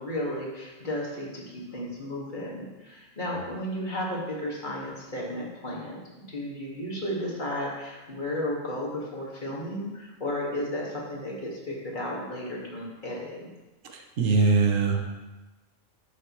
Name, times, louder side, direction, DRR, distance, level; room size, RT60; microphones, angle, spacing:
voice 1, 0.0-13.5, left 1 dB, 40° left, -5 dB, 2.1 m, -33 dB
voice 2, 14.2-15.0, right 4 dB, 85° right, 4 dB, 1.3 m, -21 dB
11.0 x 6.7 x 3.1 m, 1.1 s
omnidirectional pair, 1.3 m